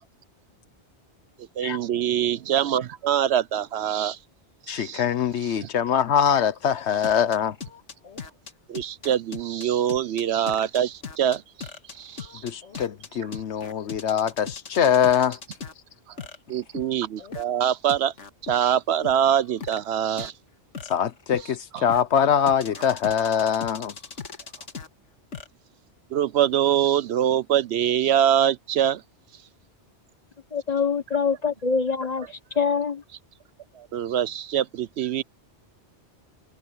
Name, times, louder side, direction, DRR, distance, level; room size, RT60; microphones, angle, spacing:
voice 1, 1.6-4.2 4.7-5.0 5.6-5.7 8.7-11.7 12.0-12.4 16.5-18.1 18.4-20.3 21.7-21.8 26.1-29.0 33.8-35.2, right 10 dB, 70° right, 0.9 m, -24 dB
voice 2, 4.7-7.6 12.4-15.4 20.9-23.9, left 8 dB, 70° left, 1.1 m, -23 dB
sound 1, 7.0-15.7 16.2-17.4 17.9-18.5 19.0-19.8 20.2-20.3 20.7-22.0 22.5-24.9 25.3-25.5, left 5 dB, 90° left, 1.9 m, -38 dB
voice 3, 30.5-33.0, left 5 dB, 35° left, 1.3 m, -25 dB
omnidirectional pair, 1.2 m